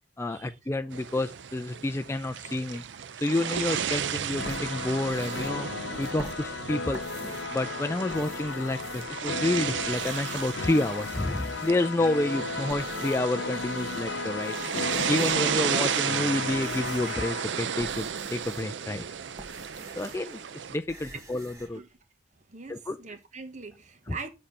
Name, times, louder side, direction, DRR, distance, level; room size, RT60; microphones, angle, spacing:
voice 1, 0.2-2.8 3.2-5.7 6.0-7.0 7.5-14.6 15.1-19.0 20.0-20.4 20.7-21.8 22.7-23.0 24.1-24.2, left 2 dB, 15° left, 0.4 m, -29 dB
sound 1, 0.9-20.8, right 8 dB, 70° right, 0.5 m, -34 dB
sound 2, 4.4-17.4, left 4 dB, 70° left, 0.6 m, -35 dB
sound 3, 4.4-7.6 8.0-9.5 9.8-12.0 12.5-14.1 14.4-15.6 16.2-20.4 20.6-21.7, right 1 dB, 20° right, 1.6 m, -47 dB
voice 2, 22.5-24.3, right 4 dB, 40° right, 1.2 m, -42 dB
7.3 x 4.3 x 6.6 m
head